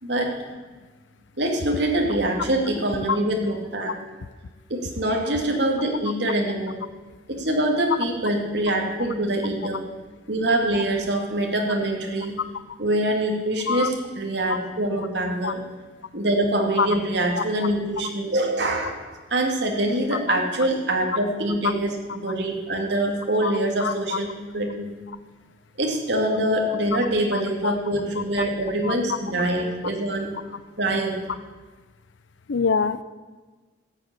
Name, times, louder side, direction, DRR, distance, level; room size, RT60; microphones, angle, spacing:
voice 1, 1.4-4.0 4.7-6.8 7.3-9.8 10.3-12.4 12.8-15.6 16.1-24.9 25.8-30.3 30.8-31.2, right 1 dB, 65° right, 1 dB, 2.3 m, -24 dB
voice 2, 23.8-24.2 27.3-27.7 28.8-28.9 32.5-33.0, left 6 dB, 80° left, 15 dB, 0.5 m, -25 dB
13.0 x 8.0 x 8.4 m, 1.3 s
head